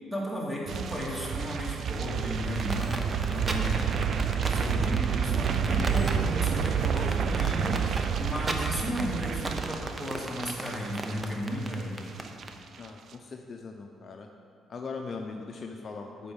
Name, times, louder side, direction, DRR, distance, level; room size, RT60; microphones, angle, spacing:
voice 1, 0.1-3.0 3.2-4.0 4.4-12.1, equal, 5° right, -4 dB, 2.2 m, -34 dB
sound 1, 0.7-11.8 12.1-12.4 12.7-12.9, right 7 dB, 60° right, 0.4 m, -29 dB
sound 2, 2.6-12.5, right 2 dB, 25° right, 0.8 m, -36 dB
voice 2, 12.8-14.3 14.7-16.3, left 4 dB, 45° left, 3 dB, 0.6 m, -40 dB
8.4 x 4.5 x 7.2 m, 2.6 s
cardioid pair, 90°, 0 cm